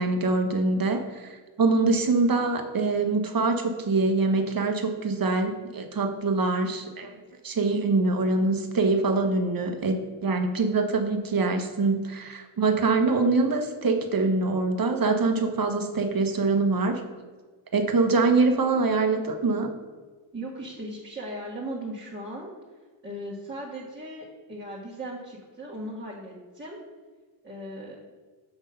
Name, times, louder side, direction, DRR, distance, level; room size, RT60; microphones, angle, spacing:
voice 1, 0.0-7.2 7.4-17.0 17.7-19.7, right 3 dB, 45° right, 5 dB, 1.2 m, -24 dB
voice 2, 20.3-22.5 23.0-26.8 27.4-28.0, right 1 dB, 25° right, -5 dB, 1.7 m, -37 dB
7.1 x 3.6 x 5.6 m, 1.4 s
cardioid pair, 50°, 48 cm